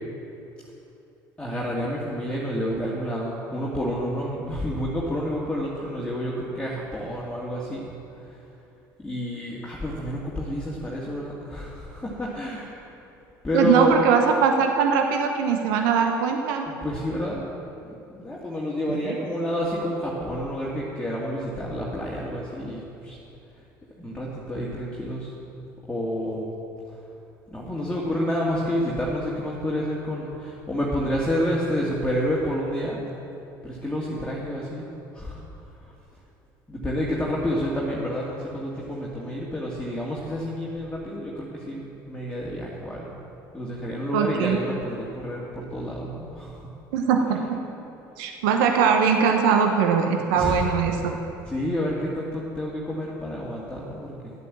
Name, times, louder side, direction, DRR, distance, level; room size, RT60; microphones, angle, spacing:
voice 1, 1.4-7.8 8.2-8.4 9.0-12.9 13.4-14.0 16.7-17.4 17.8-23.2 24.0-25.3 25.9-26.5 26.9-27.0 27.5-33.0 33.6-34.9 35.1-35.4 35.8-35.9 36.7-43.1 43.5-46.7 50.3-51.1 51.5-54.3, equal, 10° left, -6 dB, 2.2 m, -29 dB
voice 2, 13.5-16.7 18.9-19.2 44.1-44.6 46.9-47.6 48.2-51.1, right 6 dB, 75° right, 4 dB, 0.9 m, -21 dB
11.5 x 8.3 x 7.4 m, 2.8 s
hypercardioid pair, 60°, 11 cm